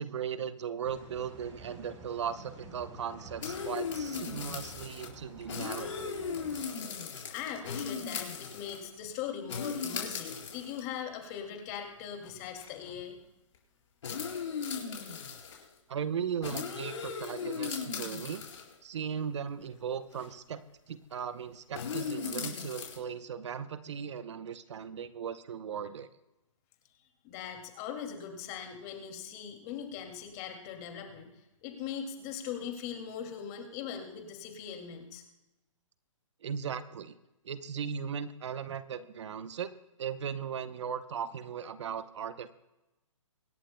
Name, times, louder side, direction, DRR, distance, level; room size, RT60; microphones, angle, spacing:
voice 1, 0.0-6.1 15.9-18.4 18.8-26.1 36.4-37.2 37.4-39.7 40.0-42.5, right 7 dB, 60° right, 13 dB, 0.8 m, -37 dB
sound 1, 0.8-6.6, right 2 dB, 25° right, 4.0 m, -50 dB
sound 2, 3.4-5.1 5.4-8.9 9.5-10.8 11.6-11.7 12.2-12.3 12.6-12.9 14.0-15.6 16.4-18.7 20.1-20.3 21.7-23.0, left 6 dB, 65° left, 4.5 m, -37 dB
voice 2, 7.3-13.2 27.2-31.3 31.6-35.2, left 8 dB, 30° left, 4 dB, 2.4 m, -40 dB
25.0 x 11.5 x 2.2 m, 0.98 s
hypercardioid pair, 150°, 17 cm